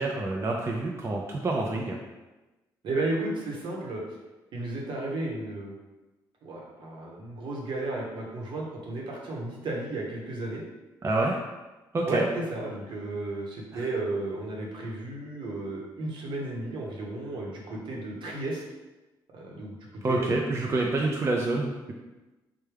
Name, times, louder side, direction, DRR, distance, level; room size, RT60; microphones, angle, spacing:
voice 1, 0.0-2.0 11.0-11.4 11.9-12.2 13.7-13.8 20.0-21.9, right 2 dB, 30° right, 0 dB, 0.4 m, -27 dB
voice 2, 2.8-4.0 4.5-5.7 6.4-10.6 12.1-18.6 19.3-19.8 20.1-20.4 20.8-20.9, right 2 dB, 65° right, -2 dB, 0.9 m, -33 dB
3.3 x 2.2 x 3.3 m, 1.1 s
supercardioid pair, 70°, 9 cm